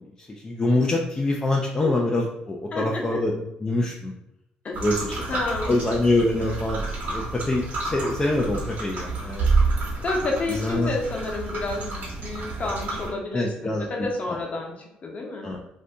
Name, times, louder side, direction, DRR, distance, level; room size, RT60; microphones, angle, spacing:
voice 1, 0.0-4.1 4.8-5.3 5.7-9.5 10.5-10.9 13.3-13.9 14.3-14.4 15.4-15.6, left 2 dB, 20° left, -1 dB, 0.4 m, -25 dB
voice 2, 2.7-3.2 4.6-4.8 5.3-5.7 10.0-15.5, left 3 dB, 45° left, 0 dB, 0.9 m, -30 dB
sound 1, 4.7-13.1, right 3 dB, 60° right, 1.1 m, -29 dB
2.7 x 2.6 x 3.4 m, 0.82 s
supercardioid pair, 70°, 3 cm